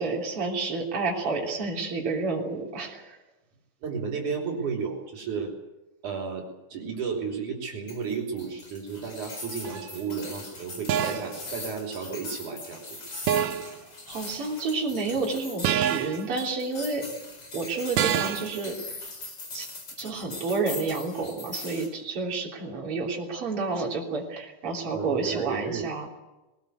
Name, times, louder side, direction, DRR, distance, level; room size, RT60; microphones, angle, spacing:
voice 1, 0.0-3.2 13.5-13.7 14.1-17.1 17.5-18.8 19.5-19.7 20.0-26.1, right 3 dB, 45° right, -2 dB, 4.3 m, -30 dB
voice 2, 3.8-5.5 6.0-12.8 24.9-25.9, right 5 dB, 70° right, 1 dB, 4.7 m, -33 dB
sound 1, 7.9-21.9, left 3 dB, 40° left, 5.4 m, -41 dB
sound 2, 9.6-9.9 10.9-11.4 13.3-13.8 15.6-16.3 18.0-18.6, right 10 dB, 85° right, 2.5 m, -26 dB
21.0 x 19.5 x 8.1 m, 1.0 s
omnidirectional pair, 3.6 m